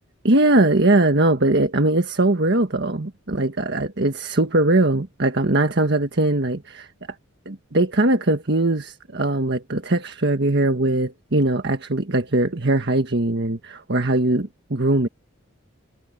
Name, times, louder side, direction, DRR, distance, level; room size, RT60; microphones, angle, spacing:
voice 1, 0.2-6.9 7.4-15.1, right 2 dB, 55° right, 1.6 m, -20 dB
head